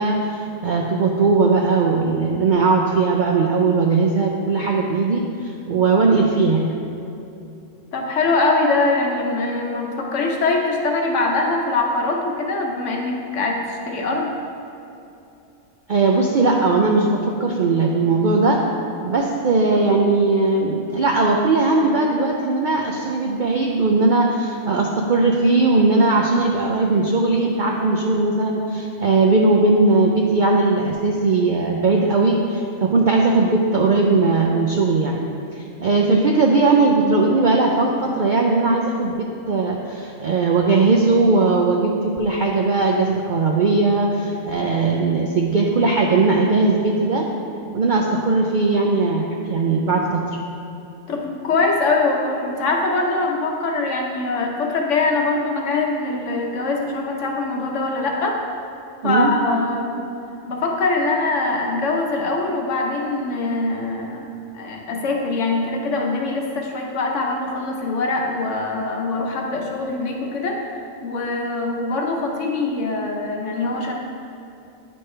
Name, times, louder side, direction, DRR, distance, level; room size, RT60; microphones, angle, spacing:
voice 1, 0.0-6.8 15.9-18.6 19.0-35.2 35.5-47.2 47.7-50.2 59.0-59.3, right 3 dB, 60° right, 0 dB, 0.5 m, -19 dB
voice 2, 7.9-14.3 51.1-58.4 59.0-60.0 60.5-64.2 64.5-73.9, left 3 dB, 65° left, 1 dB, 1.2 m, -23 dB
9.3 x 5.4 x 3.3 m, 2.8 s
omnidirectional pair, 1.4 m